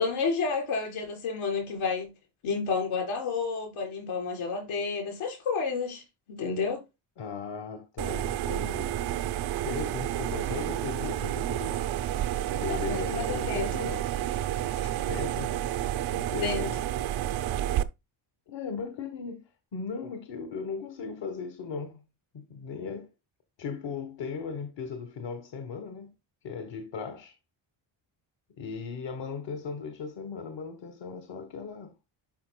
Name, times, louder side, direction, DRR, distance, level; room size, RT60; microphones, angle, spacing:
voice 1, 0.0-2.1 2.4-6.0 6.3-6.8 12.7-13.7 14.8-15.0 16.4-16.7, left 5 dB, 85° left, 3.9 m, -30 dB
voice 2, 7.2-9.0 9.6-11.8 12.5-14.0 15.1-15.6 16.1-16.8 18.5-19.4 19.7-22.0 22.3-23.1 23.6-26.1 26.4-27.3 28.6-31.9, left 5 dB, 60° left, 1.5 m, -37 dB
sound 1, 8.0-17.8, right 12 dB, 75° right, 0.8 m, -30 dB
11.5 x 5.0 x 2.2 m
cardioid pair, 150°, 48 cm